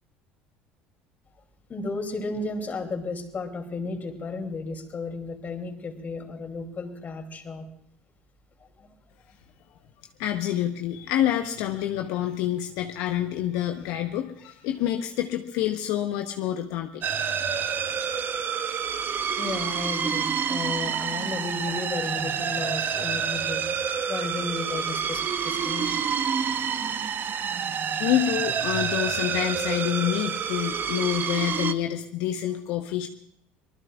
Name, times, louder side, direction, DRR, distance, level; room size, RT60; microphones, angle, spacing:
voice 1, 1.7-7.7 8.8-8.9 19.4-23.6 24.0-26.0 26.9-27.0, left 3 dB, 35° left, 4 dB, 3.0 m, -33 dB
voice 2, 10.2-17.0 28.0-33.1, left 12 dB, 75° left, 4 dB, 0.9 m, -27 dB
sound 1, 17.0-31.7, right 7 dB, 40° right, 0.9 m, -28 dB
25.5 x 19.5 x 2.4 m, 0.71 s
supercardioid pair, 90°, 5 cm